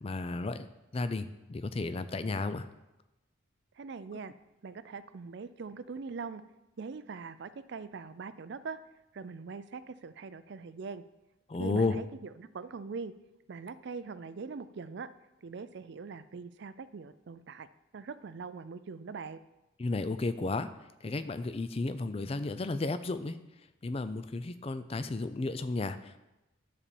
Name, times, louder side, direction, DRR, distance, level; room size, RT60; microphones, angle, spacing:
voice 1, 0.0-2.7 11.5-12.0 19.8-20.7 21.0-23.4 23.8-26.2, left 3 dB, 30° left, 12 dB, 0.4 m, -33 dB
voice 2, 3.8-4.3 4.6-6.4 6.8-8.8 9.1-11.0 11.6-13.1 13.5-15.1 15.4-17.7 17.9-19.4, right 5 dB, 55° right, 13 dB, 0.4 m, -42 dB
9.9 x 4.2 x 7.0 m, 0.98 s
head